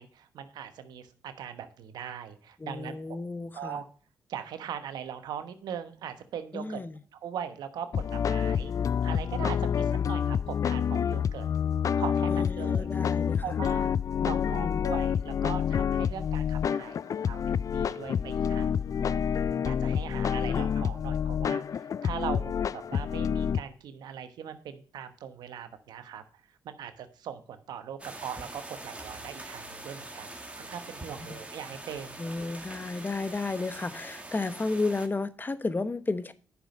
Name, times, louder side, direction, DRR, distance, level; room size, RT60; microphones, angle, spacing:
voice 1, 0.0-3.2 3.5-3.8 4.3-6.8 7.1-8.7 9.0-11.5 12.0-12.9 13.4-13.9 14.2-19.2 19.6-26.2 26.6-32.3, right 8 dB, 80° right, 1.1 m, -40 dB
voice 2, 2.6-3.8 6.5-7.0 12.3-13.6 14.2-14.8 31.3-31.4 32.2-36.3, left 3 dB, 30° left, 1.0 m, -33 dB
sound 1, 7.9-23.6, left 8 dB, 55° left, 0.3 m, -28 dB
sound 2, 28.0-35.1, right 2 dB, 20° right, 2.0 m, -44 dB
10.0 x 6.1 x 5.2 m
supercardioid pair, 55°, 7 cm